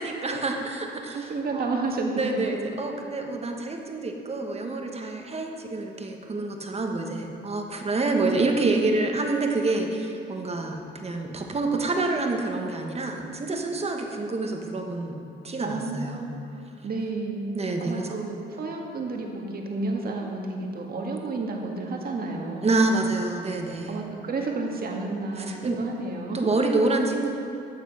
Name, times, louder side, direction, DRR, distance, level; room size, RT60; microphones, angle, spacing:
voice 1, 0.0-1.7 2.1-15.2 15.4-16.3 17.5-18.2 22.6-24.0 25.4-25.8 26.3-27.3, right 2 dB, 30° right, 3 dB, 1.4 m, -27 dB
voice 2, 1.1-2.6 8.1-8.5 15.6-16.4 16.8-22.7 23.9-26.5, right 3 dB, 50° right, 1 dB, 1.8 m, -31 dB
12.5 x 7.3 x 5.6 m, 2.7 s
cardioid pair, 90°, 20 cm